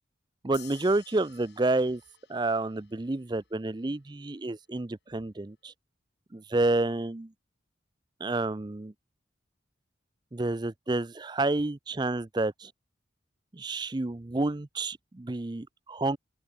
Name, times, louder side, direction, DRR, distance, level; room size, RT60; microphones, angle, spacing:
voice 1, 0.4-2.0 2.3-5.7 6.3-7.3 8.2-8.9 10.3-12.7 13.5-16.2, right 2 dB, 25° right, 0.5 m, -29 dB
sound 1, 0.5-3.3, left 12 dB, 60° left, 5.1 m, -54 dB
open air
head